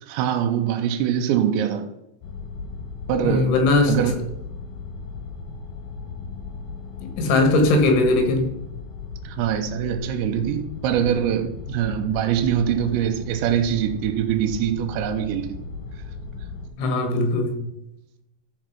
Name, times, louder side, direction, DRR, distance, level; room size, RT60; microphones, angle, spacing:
voice 1, 0.0-1.9 3.1-3.6 3.9-4.2 9.2-15.6, right 9 dB, 85° right, 3.0 m, -23 dB
sound 1, 2.2-16.7, left 4 dB, 65° left, 2.2 m, -36 dB
voice 2, 3.2-3.9 7.0-8.5 16.8-17.6, left 2 dB, 85° left, 4.0 m, -19 dB
13.5 x 4.7 x 5.9 m
omnidirectional pair, 5.2 m